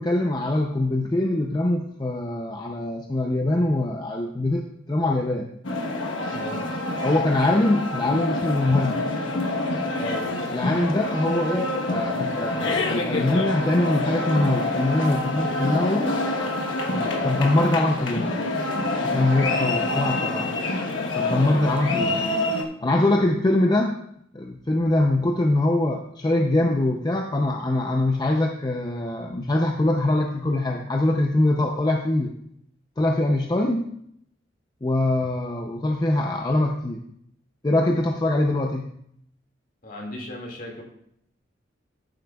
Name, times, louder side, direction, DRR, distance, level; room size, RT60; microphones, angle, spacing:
voice 1, 0.0-5.5 7.0-9.0 10.5-16.1 17.2-18.3 19.0-20.5 21.1-22.2 22.8-23.9 24.3-32.3 33.0-33.9 34.8-37.0 37.6-38.9, left 2 dB, 20° left, 2 dB, 0.5 m, -23 dB
sound 1, 5.6-22.6, left 2 dB, 80° left, 1.1 m, -26 dB
voice 2, 6.3-6.7 10.0-10.3 16.8-17.2 21.3-21.7 22.9-23.2 39.8-40.8, left 1 dB, 45° left, -1 dB, 2.1 m, -35 dB
14.0 x 7.5 x 2.3 m, 0.72 s
head